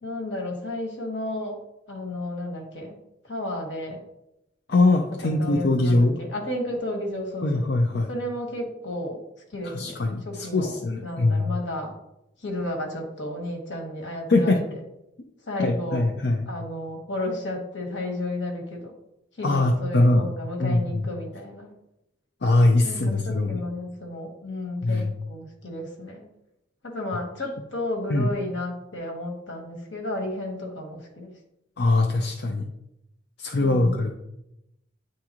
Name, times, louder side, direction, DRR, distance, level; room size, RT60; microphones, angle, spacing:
voice 1, 0.0-1.6 1.9-2.9 3.2-4.0 5.2-7.6 8.1-9.2 9.5-10.0 10.2-11.9 12.4-14.6 15.5-16.0 16.5-18.9 19.4-21.7 22.8-26.2 26.8-31.3 33.6-34.0, left 1 dB, 80° left, 1 dB, 1.5 m, -32 dB
voice 2, 4.7-6.2 7.4-8.1 9.6-11.5 14.3-14.6 15.6-16.5 19.4-20.3 20.6-21.0 22.4-23.6 24.8-25.1 28.1-28.3 31.8-32.7 33.4-34.1, left 2 dB, 60° left, 2 dB, 0.5 m, -22 dB
9.6 x 3.7 x 3.0 m, 0.87 s
head